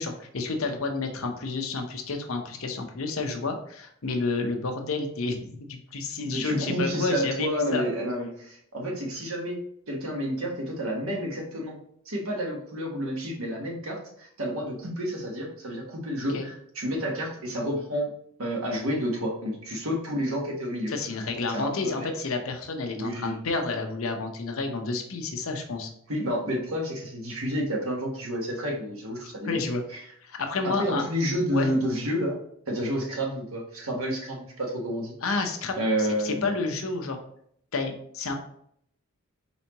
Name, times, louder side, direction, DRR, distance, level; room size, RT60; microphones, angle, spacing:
voice 1, 0.0-7.9 16.3-16.5 20.9-25.9 29.4-29.8 30.2-31.0 31.5-31.7 35.2-37.2 37.7-38.3, left 3 dB, 70° left, 4 dB, 0.8 m, -30 dB
voice 2, 6.2-9.6 9.9-11.8 12.1-18.1 18.4-20.9 21.4-22.1 22.9-23.3 26.1-29.6 29.9-30.0 30.6-32.4 32.7-35.1 35.8-36.5, equal, 70° right, 0 dB, 1.2 m, -30 dB
4.4 x 4.1 x 2.9 m, 0.68 s
head